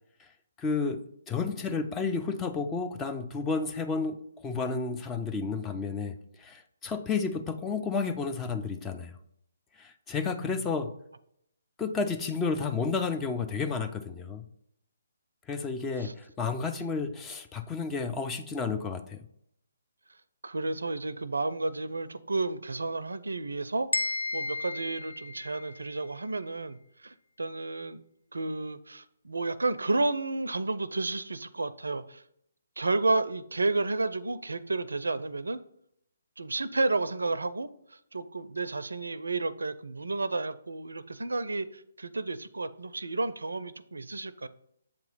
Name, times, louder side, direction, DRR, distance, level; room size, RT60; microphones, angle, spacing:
voice 1, 0.6-9.1 9.8-10.9 11.8-14.5 15.5-19.2, left 4 dB, 15° left, 7 dB, 0.4 m, -31 dB
voice 2, 20.4-28.0 28.3-32.2 32.8-35.6 36.4-44.5, right 2 dB, 80° right, 15 dB, 0.4 m, -31 dB
sound 1, 23.9-25.9, left 3 dB, 80° left, 0.5 m, -33 dB
7.7 x 3.0 x 5.5 m, 0.72 s
figure-of-eight pair, 140°, 0 cm